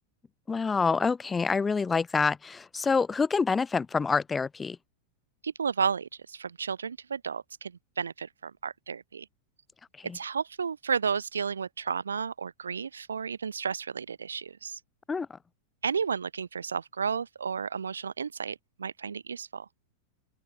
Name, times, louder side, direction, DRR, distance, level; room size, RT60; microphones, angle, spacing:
voice 1, 0.5-4.8 10.0-10.1 15.1-15.3, left 5 dB, 15° left, 1.7 m, -27 dB
voice 2, 5.4-9.3 10.1-14.8 15.8-19.7, right 6 dB, 70° right, 2.1 m, -32 dB
open air
figure-of-eight pair, 90°, 0 cm